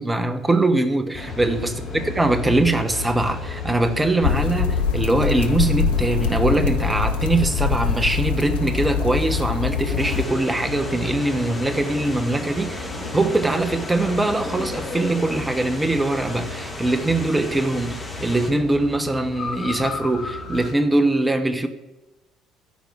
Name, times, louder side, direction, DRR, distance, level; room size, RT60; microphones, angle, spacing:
voice 1, 0.0-12.9 13.1-21.7, right 2 dB, 15° right, 1.1 m, -22 dB
sound 1, 1.1-20.7, left 3 dB, 45° left, 4.1 m, -33 dB
sound 2, 4.2-10.3, left 7 dB, 70° left, 0.6 m, -23 dB
sound 3, 10.0-18.5, left 2 dB, 15° left, 2.9 m, -37 dB
12.5 x 5.3 x 8.9 m
figure-of-eight pair, 55°, 0 cm